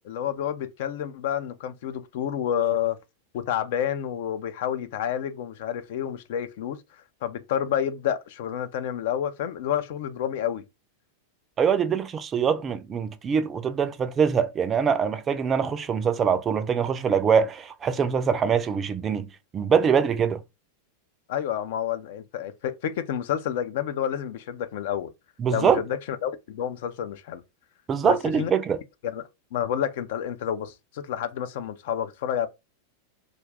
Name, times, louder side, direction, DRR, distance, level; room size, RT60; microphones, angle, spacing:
voice 1, 0.0-3.0 3.3-6.8 7.2-10.6 21.3-25.1 25.5-27.4 28.0-28.5 29.0-32.5, left 9 dB, 55° left, 0.3 m, -29 dB
voice 2, 11.6-20.4 25.4-25.8 27.9-28.8, right 7 dB, 25° right, 0.4 m, -23 dB
2.5 x 2.3 x 3.3 m
figure-of-eight pair, 90°, 0 cm